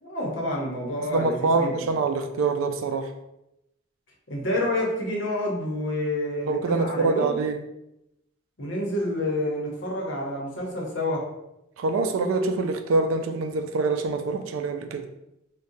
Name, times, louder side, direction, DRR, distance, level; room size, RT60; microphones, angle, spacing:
voice 1, 0.0-1.9 4.3-7.4 8.6-11.2, left 1 dB, 60° left, -1 dB, 0.8 m, -28 dB
voice 2, 1.1-3.1 6.4-7.6 11.8-15.1, right 3 dB, 80° right, 7 dB, 0.4 m, -25 dB
2.6 x 2.2 x 3.8 m, 0.87 s
head